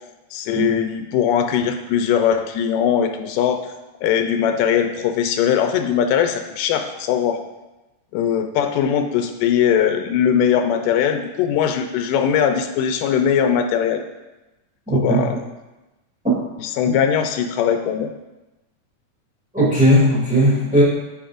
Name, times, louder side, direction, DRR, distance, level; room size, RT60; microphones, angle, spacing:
voice 1, 0.3-3.6 4.0-7.4 8.1-14.0 14.9-15.4 16.6-18.1, left 8 dB, 90° left, 6 dB, 2.2 m, -20 dB
voice 2, 14.9-15.3 16.8-16.9 19.5-20.8, equal, 5° right, -7 dB, 1.8 m, -17 dB
8.7 x 7.2 x 2.5 m, 1.0 s
omnidirectional pair, 3.7 m